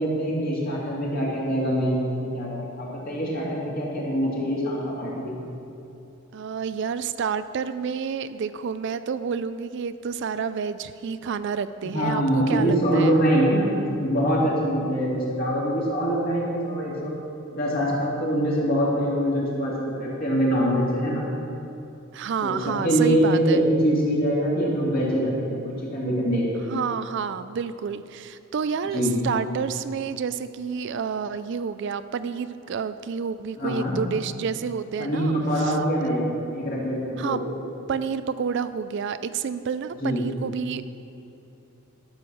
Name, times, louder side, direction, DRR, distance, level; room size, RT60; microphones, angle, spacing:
voice 1, 0.0-5.4 11.9-17.1 17.5-21.2 22.4-26.8 28.9-29.2 33.6-34.0 35.0-36.3 36.5-37.4 40.0-40.2, equal, 45° left, -5 dB, 2.7 m, -24 dB
voice 2, 6.3-13.2 22.1-23.7 26.7-35.8 37.2-37.4 37.9-40.8, right 6 dB, 55° right, 12 dB, 0.3 m, -29 dB
12.0 x 7.0 x 6.3 m, 2.8 s
head